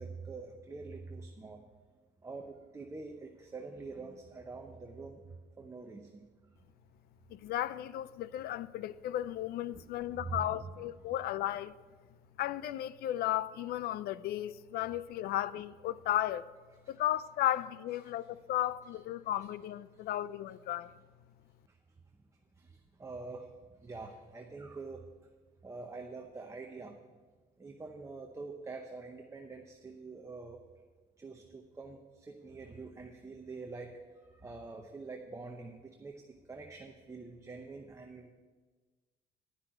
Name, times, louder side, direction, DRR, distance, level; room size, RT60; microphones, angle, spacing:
voice 1, 0.0-1.6 2.2-5.2 5.6-6.2 9.7-10.8 18.0-18.1 19.4-19.5 22.6-23.5 23.8-25.1 25.6-27.0 27.6-30.6 31.2-34.0 34.3-38.3, right 3 dB, 15° right, 0.8 m, -45 dB
voice 2, 7.3-11.7 12.4-16.5 16.9-20.9, left 13 dB, 65° left, 0.4 m, -34 dB
10.5 x 5.8 x 7.8 m
cardioid pair, 110°, 17 cm